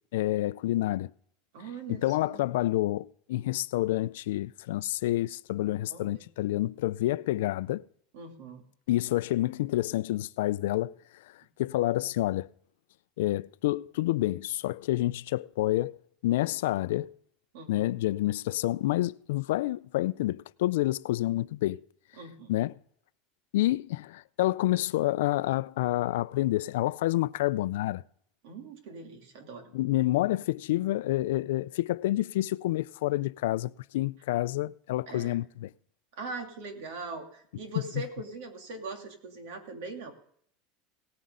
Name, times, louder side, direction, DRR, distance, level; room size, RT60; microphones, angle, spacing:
voice 1, 0.1-1.1 1.9-7.8 8.9-11.0 11.6-12.5 13.2-16.0 16.2-17.1 17.7-21.8 22.5-22.7 23.5-28.0 29.7-35.7, left 16 dB, 90° left, 0.4 m, -28 dB
voice 2, 1.5-2.4 5.9-6.2 8.1-8.6 17.5-17.9 22.2-22.5 28.4-29.7 35.1-35.4 36.2-40.1, right 3 dB, 60° right, 2.7 m, -41 dB
18.0 x 9.5 x 3.8 m
supercardioid pair, 175°, 0 cm